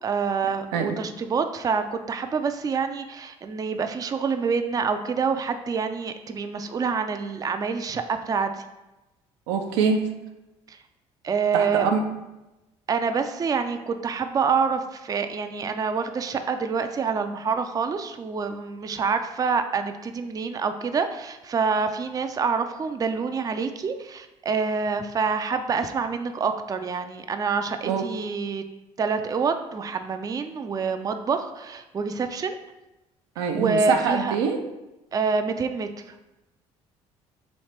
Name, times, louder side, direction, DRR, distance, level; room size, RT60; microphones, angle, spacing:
voice 1, 0.0-8.5 10.7-10.8 11.2-11.9 12.9-28.6 29.0-32.6 33.5-34.4 35.1-35.9, right 5 dB, 25° right, 7 dB, 0.4 m, -26 dB
voice 2, 9.5-10.1 11.5-12.0 27.8-28.0 33.4-34.6, right 6 dB, 85° right, 4 dB, 0.5 m, -24 dB
3.2 x 2.8 x 4.3 m, 0.99 s
hypercardioid pair, 65°, 14 cm